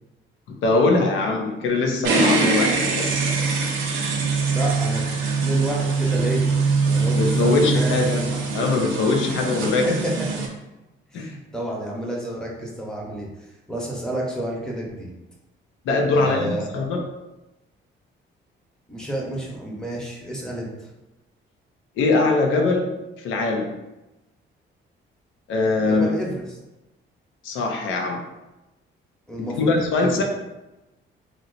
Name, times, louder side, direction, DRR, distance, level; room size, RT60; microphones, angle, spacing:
voice 1, 0.5-3.1 7.1-9.9 11.1-11.3 15.9-17.0 22.0-22.9 23.2-23.7 25.5-26.1 27.4-28.2 29.4-30.2, left 3 dB, 80° left, 2 dB, 0.5 m, -22 dB
sound 1, 2.0-10.5, right 4 dB, 90° right, 0.6 m, -23 dB
voice 2, 4.5-5.0 5.4-6.5 6.8-8.0 9.8-9.9 10.3-10.4 11.1-13.3 13.7-15.1 16.1-16.7 18.9-20.7 25.8-26.4 29.3-30.2, right 1 dB, 5° left, -3 dB, 0.9 m, -30 dB
3.0 x 2.0 x 3.9 m, 1.0 s
cardioid pair, 90°, 20 cm